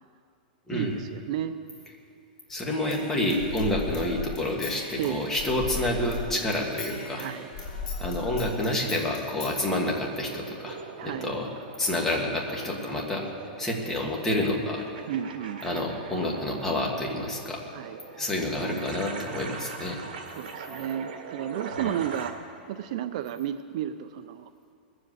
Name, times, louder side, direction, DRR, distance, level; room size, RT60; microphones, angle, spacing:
voice 1, 0.7-1.6 5.0-5.3 7.2-7.5 11.0-11.4 15.1-15.6 17.7-18.0 20.4-24.5, right 10 dB, 45° right, 10 dB, 0.4 m, -33 dB
Human voice / Scissors, 2.5-6.3 6.5-9.5, left 5 dB, 40° left, 4.6 m, -37 dB
voice 2, 2.5-7.3 8.0-10.8 11.0-11.5 11.8-13.2 13.6-14.9 15.6-17.6 18.2-20.0 21.8-21.9, left 1 dB, 10° left, -2 dB, 1.6 m, -28 dB
sound 1, 10.0-22.3, right 5 dB, 75° right, 1.8 m, -42 dB
20.0 x 7.7 x 8.0 m, 2.5 s
supercardioid pair, 170°, 5 cm